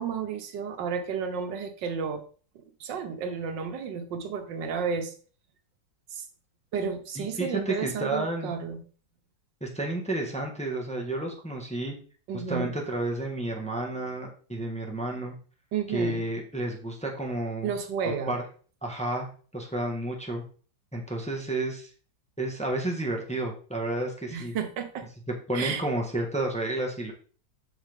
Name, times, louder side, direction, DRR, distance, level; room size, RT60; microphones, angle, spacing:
voice 1, 0.0-2.2 2.8-5.1 6.1-6.2 6.7-8.8 12.3-12.7 15.7-16.3 17.6-18.4 24.3-25.1 25.5-25.8, right 6 dB, 80° right, 7 dB, 1.7 m, -32 dB
voice 2, 7.1-8.5 9.6-11.9 12.3-15.3 15.9-17.7 18.3-18.4 18.8-19.3 19.5-20.4 20.9-21.9 22.4-24.5 25.5-27.1, right 2 dB, 5° left, 0 dB, 1.3 m, -31 dB
7.9 x 6.0 x 3.6 m, 0.40 s
omnidirectional pair, 1.9 m